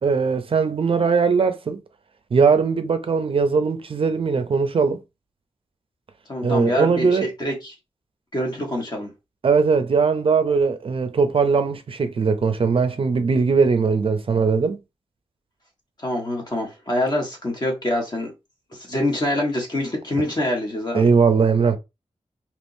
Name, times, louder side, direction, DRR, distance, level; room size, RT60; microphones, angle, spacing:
voice 1, 0.0-1.8 2.3-5.0 6.4-7.3 9.4-14.8 20.9-21.8, right 5 dB, 50° right, 0.5 m, -20 dB
voice 2, 6.3-7.7 8.3-9.1 16.0-18.3 18.7-21.0, left 1 dB, 35° left, 1.3 m, -25 dB
3.5 x 2.9 x 2.6 m
wide cardioid pair, 130°, 12 cm